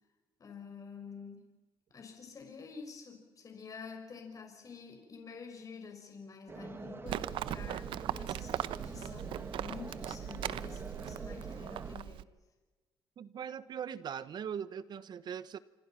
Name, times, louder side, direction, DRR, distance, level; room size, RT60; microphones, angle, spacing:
voice 1, 0.4-1.4 1.9-12.2, left 5 dB, 40° left, 3 dB, 6.1 m, -48 dB
sound 1, 6.5-12.0, right 3 dB, 25° right, 2.0 m, -46 dB
Livestock farm animals working animals, 7.1-12.2, right 12 dB, 75° right, 0.8 m, -39 dB
voice 2, 13.2-15.6, right 8 dB, 55° right, 16 dB, 1.1 m, -40 dB
26.5 x 26.0 x 5.9 m, 1.2 s
cardioid pair, 90°, 9 cm